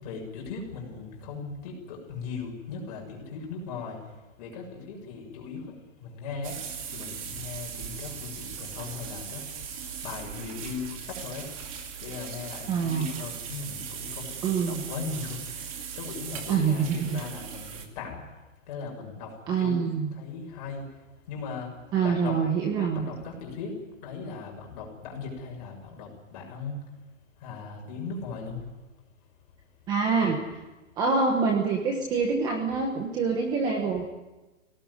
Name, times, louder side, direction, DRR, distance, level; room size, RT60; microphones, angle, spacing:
voice 1, 0.0-4.0 4.4-5.7 6.0-6.6 6.9-9.4 10.0-11.5 12.0-18.2 18.7-19.3 19.6-20.8 21.3-21.7 22.0-22.4 22.9-23.7 24.0-26.8 27.4-28.6, left 5 dB, 30° left, 0 dB, 6.7 m, -38 dB
sound 1, 6.4-17.8, right 7 dB, 25° right, 2.5 m, -39 dB
voice 2, 12.7-13.1 14.4-14.8 16.5-17.2 19.5-20.1 21.9-23.0 29.9-30.4 31.0-34.0, right 5 dB, 10° right, 2 dB, 1.2 m, -25 dB
23.0 x 18.5 x 9.7 m, 1.1 s
hypercardioid pair, 175°, 38 cm